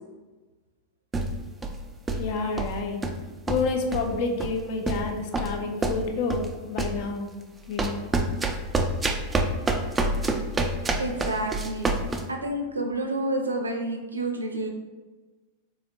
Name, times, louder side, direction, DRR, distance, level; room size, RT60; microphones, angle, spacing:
sound 1, 1.1-1.8 2.1-2.3 2.6-3.2 3.5-4.1 4.4-4.6 4.9-6.5 6.8-7.0 7.8-12.3, right 2 dB, 15° right, 0.3 m, -27 dB
voice 1, 2.2-3.0 3.5-7.3 7.7-8.0, left 4 dB, 50° left, 4 dB, 0.4 m, -29 dB
voice 2, 11.0-11.9 12.3-14.7, right 1 dB, 80° right, 3 dB, 0.4 m, -29 dB
4.0 x 2.8 x 2.5 m, 1.2 s
figure-of-eight pair, 90°, 0 cm